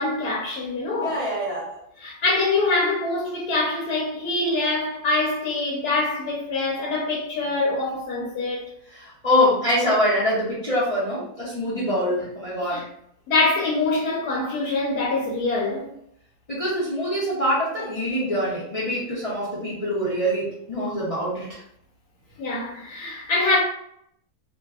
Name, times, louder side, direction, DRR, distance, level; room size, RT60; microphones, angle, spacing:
voice 1, 0.0-1.2 2.0-8.7 12.6-12.8 13.3-15.9 22.4-23.6, left 3 dB, 85° left, 1.2 m, -24 dB
voice 2, 1.0-1.8 8.9-12.9 16.5-21.6, left 1 dB, 55° left, 0.4 m, -24 dB
2.6 x 2.3 x 2.3 m
omnidirectional pair, 1.7 m